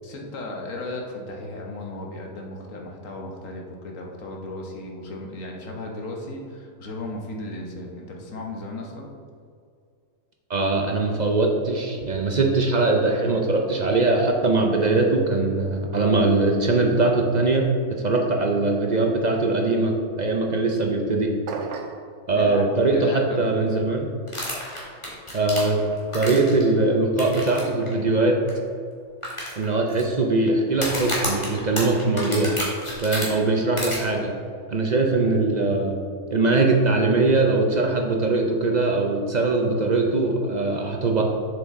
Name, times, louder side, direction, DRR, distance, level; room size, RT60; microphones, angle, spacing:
voice 1, 0.0-9.1 22.3-23.9 33.5-33.6, left 2 dB, 65° left, 0 dB, 1.4 m, -36 dB
voice 2, 10.5-17.7 18.0-21.3 22.3-24.1 25.3-25.8 26.1-28.4 29.6-32.5 33.0-34.3 34.7-36.0 36.3-41.2, right 3 dB, 45° right, 1 dB, 0.5 m, -21 dB
sound 1, 21.5-22.1, right 5 dB, 65° right, 0.9 m, -33 dB
sound 2, 24.3-26.6 27.2-27.6 27.9-28.0 28.5-28.6 29.2-30.0 30.7-33.3 33.8-34.0, equal, 20° left, 1.9 m, -30 dB
7.1 x 6.8 x 3.7 m, 2.2 s
omnidirectional pair, 1.5 m